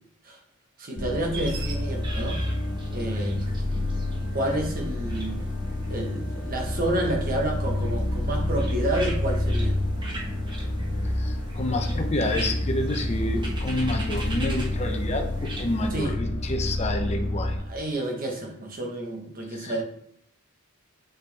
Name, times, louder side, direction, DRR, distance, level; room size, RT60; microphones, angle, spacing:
voice 1, 0.8-2.4 2.9-3.4 4.3-5.4 5.9-9.8 15.9-16.1 17.7-19.8, right 1 dB, 40° right, 1 dB, 1.3 m, -29 dB
sound 1, 1.0-17.6, left 1 dB, 55° left, 1.6 m, -28 dB
sound 2, 1.2-16.0, right 2 dB, 20° right, 1.2 m, -41 dB
voice 2, 11.1-17.6 19.5-19.8, left 1 dB, 30° left, 3 dB, 0.7 m, -29 dB
6.2 x 5.6 x 3.4 m, 0.71 s
head